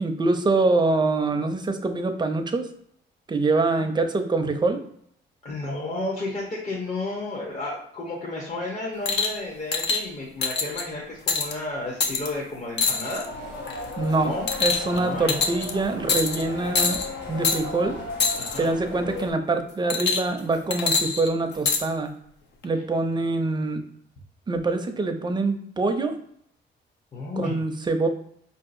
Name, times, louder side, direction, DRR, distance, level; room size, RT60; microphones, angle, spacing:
voice 1, 0.0-2.7 3.3-4.8 14.0-14.3 14.6-18.0 18.6-22.1 22.6-23.8 24.5-26.2 27.4-28.1, right 3 dB, 20° right, 6 dB, 0.5 m, -24 dB
voice 2, 5.4-13.3 14.2-14.5 14.8-15.3 18.3-18.7 22.7-22.8 27.1-27.6, left 2 dB, 40° left, -4 dB, 0.9 m, -32 dB
sound 1, 9.1-9.4 9.7-10.0 10.4-10.8 11.3-11.5 12.0-12.3 12.8-13.3 13.7-13.9 14.5-15.0 15.3-15.7 16.1-16.4 16.7-17.1 17.4-17.6 18.2-18.6 19.9-20.4 20.7-21.8 22.6-22.7, left 4 dB, 60° left, 0.6 m, -24 dB
sound 2, 13.3-19.3, left 3 dB, 75° left, 0.9 m, -35 dB
4.7 x 2.8 x 2.6 m, 0.68 s
cardioid pair, 90°, 20 cm